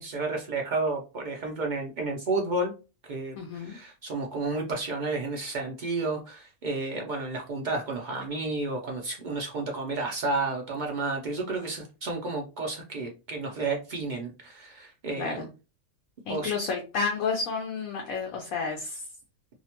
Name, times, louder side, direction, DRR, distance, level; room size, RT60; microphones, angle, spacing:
voice 1, 0.0-2.7 3.1-15.5 16.3-16.5, right 3 dB, 70° right, 1 dB, 0.4 m, -31 dB
voice 2, 3.4-3.8 15.2-15.5 16.3-19.0, left 5 dB, 85° left, 1 dB, 1.1 m, -31 dB
2.7 x 2.1 x 2.8 m, 0.31 s
omnidirectional pair, 1.4 m